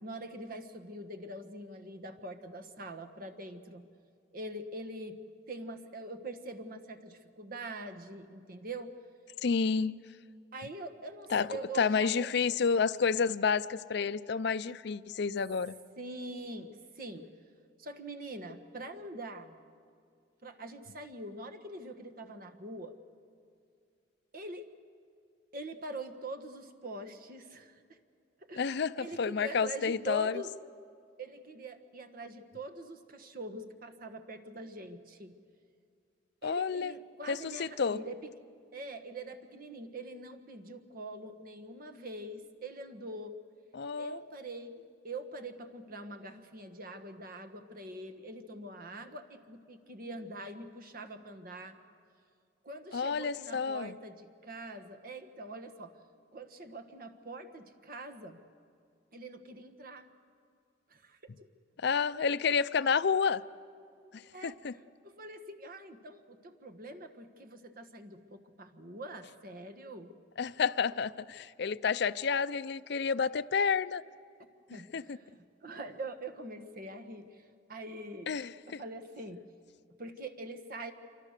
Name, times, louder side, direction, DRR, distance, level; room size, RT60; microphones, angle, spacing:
voice 1, 0.0-3.8 4.3-5.2 5.5-8.9 10.5-12.3 16.0-17.3 17.8-19.6 20.4-22.9 24.3-24.7 25.5-28.0 28.4-30.5 31.2-35.4 36.4-38.3 38.7-43.4 44.0-44.8 45.0-51.8 52.6-56.0 56.3-58.4 59.1-60.1 60.9-61.3 64.3-64.6 65.0-70.1 74.7-77.4 77.7-78.3 78.7-79.4 80.0-80.9, right 2 dB, 50° right, 7 dB, 1.5 m, -44 dB
voice 2, 9.4-9.9 11.3-11.5 11.7-15.7 28.6-30.4 36.4-36.9 37.3-38.0 43.7-44.2 52.9-53.9 61.8-63.4 64.1-64.7 70.4-74.0 74.9-75.2 78.3-78.8, left 5 dB, 60° left, 15 dB, 0.5 m, -30 dB
27.0 x 24.5 x 6.6 m, 2.4 s
head